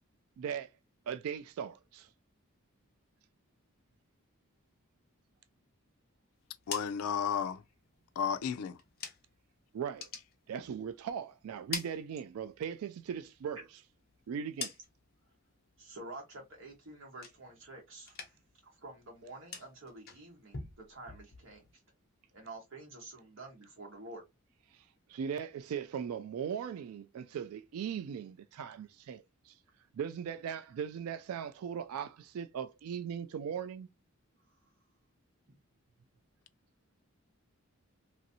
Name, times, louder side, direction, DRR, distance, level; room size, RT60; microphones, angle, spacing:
voice 1, 0.4-0.7 1.1-2.1 9.7-10.1 10.5-13.8 14.3-14.7 24.7-29.6 29.9-33.9, right 8 dB, 80° right, 0.3 m, -39 dB
sound 1, 6.4-9.5 9.8-11.1 11.4-12.7 13.1-15.2 15.6-16.1 16.4-17.7 18.0-18.6 18.9-21.7, left 6 dB, 45° left, 0.7 m, -46 dB
voice 2, 6.7-7.6 8.2-8.8, left 7 dB, 85° left, 0.4 m, -33 dB
voice 3, 15.8-18.3 18.6-21.8 22.3-24.2, right 2 dB, 55° right, 1.3 m, -49 dB
3.0 x 2.6 x 2.7 m
head